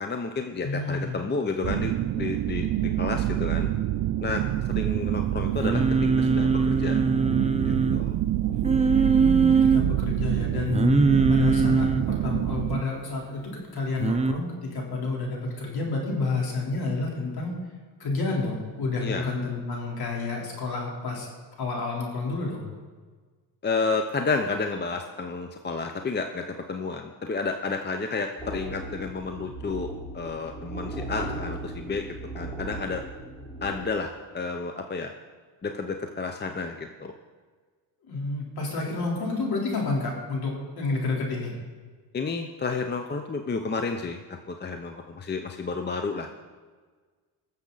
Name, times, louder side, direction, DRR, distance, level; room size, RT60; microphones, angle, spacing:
voice 1, 0.0-3.7 4.2-4.4 4.8-7.0 7.6-8.2 19.0-19.3 23.6-32.0 32.3-33.0 33.6-35.1 35.6-37.1 42.1-46.3, left 4 dB, 25° left, 5 dB, 0.8 m, -31 dB
voice 2, 0.6-1.2 9.1-11.0 11.3-17.6 18.0-21.3 21.6-22.7 38.1-41.5, left 3 dB, 55° left, -2 dB, 3.9 m, -30 dB
sound 1, 1.6-12.8, right 13 dB, 50° right, 0.5 m, -27 dB
Singing, 5.6-8.0 8.6-9.8 10.7-12.0 14.0-14.3, right 4 dB, 15° right, 0.8 m, -22 dB
sound 2, 28.4-33.8, right 2 dB, 5° left, 3.9 m, -37 dB
21.5 x 7.2 x 4.1 m, 1.5 s
cardioid pair, 95°, 45 cm